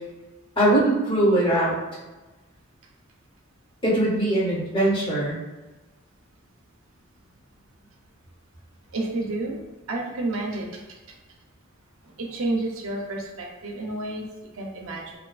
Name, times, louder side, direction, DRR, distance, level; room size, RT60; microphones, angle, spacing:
voice 1, 0.6-1.8 3.8-5.4, right 1 dB, 25° left, -6 dB, 0.7 m, -21 dB
voice 2, 8.9-9.6 9.9-10.8 12.0-15.2, right 2 dB, 80° right, 0 dB, 0.5 m, -30 dB
2.6 x 2.3 x 2.3 m, 1.1 s
head